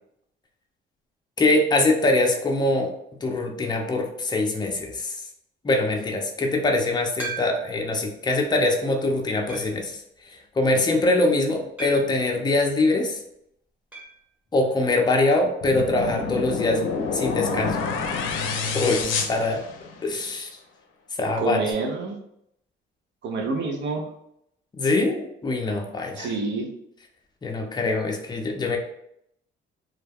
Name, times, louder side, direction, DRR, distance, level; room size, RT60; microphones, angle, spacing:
voice 1, 1.4-2.9 3.2-5.2 5.6-10.0 10.3-13.2 14.5-16.8 17.1-17.8 18.7-19.6 20.0-20.5 21.2-21.6 24.8-26.3 27.4-28.8, left 2 dB, 20° left, 2 dB, 0.5 m, -23 dB
sound 1, 7.2-7.9 8.5-8.6 9.5-9.9 11.8-12.3 13.9-14.2 14.5-14.6 14.8-14.9 16.9-17.0, right 4 dB, 5° right, 0.9 m, -36 dB
sound 2, 15.6-20.2, left 5 dB, 90° left, 0.5 m, -28 dB
voice 2, 21.4-22.2 23.2-24.0 26.2-26.7, right 3 dB, 65° right, 3 dB, 0.6 m, -27 dB
2.3 x 2.2 x 3.3 m, 0.76 s
cardioid pair, 90°, 20 cm